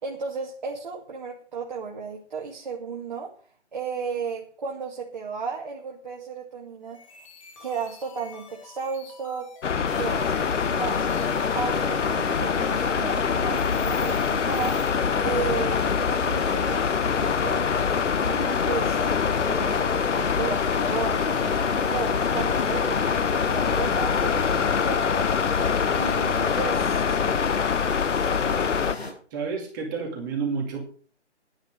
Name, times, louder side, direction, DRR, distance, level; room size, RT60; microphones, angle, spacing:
voice 1, 0.0-3.3 3.7-7.0 7.6-11.1 11.5-14.9 15.2-17.8 18.2-19.2 19.4-25.3 25.9-27.4, right 5 dB, 40° right, 2.2 m, -34 dB
sound 1, 6.8-11.8, left 5 dB, 30° left, 2.0 m, -49 dB
sound 2, 9.6-29.0, left 6 dB, 85° left, 0.7 m, -24 dB
sound 3, 9.9-29.1, left 2 dB, 60° left, 6.6 m, -36 dB
voice 2, 29.3-30.8, right 5 dB, 15° right, 2.2 m, -30 dB
10.5 x 10.5 x 6.3 m
figure-of-eight pair, 160°, 35 cm